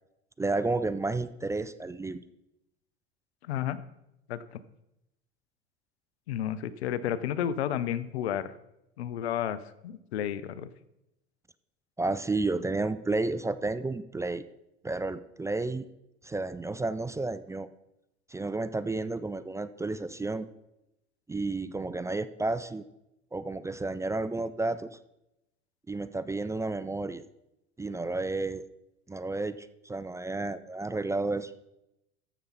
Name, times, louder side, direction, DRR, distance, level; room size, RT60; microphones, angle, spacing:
voice 1, 0.4-2.2 12.0-14.4 14.8-15.9 16.2-17.7 18.3-20.5 21.3-22.8 23.3-24.9 25.9-27.2 27.8-28.6 29.1-31.5, right 2 dB, 10° right, 14 dB, 0.4 m, -31 dB
voice 2, 3.4-3.8 4.3-4.6 6.3-8.5 9.0-10.7, left 10 dB, 85° left, 15 dB, 0.7 m, -32 dB
13.5 x 7.0 x 4.0 m, 0.86 s
hypercardioid pair, 85°, 31 cm